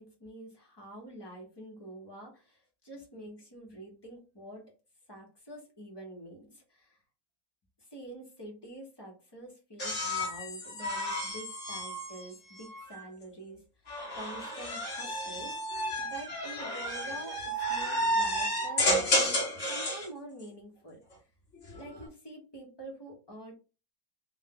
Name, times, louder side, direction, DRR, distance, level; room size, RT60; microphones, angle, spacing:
voice 1, 0.0-4.6 5.1-7.0 7.9-13.6 14.1-15.5 16.0-21.0 21.7-23.5, right 1 dB, 15° left, -1 dB, 1.2 m, -47 dB
sound 1, 9.8-13.1 13.9-20.1 21.5-22.1, equal, 45° left, 1.5 m, -32 dB
3.6 x 2.6 x 3.7 m, 0.32 s
omnidirectional pair, 2.0 m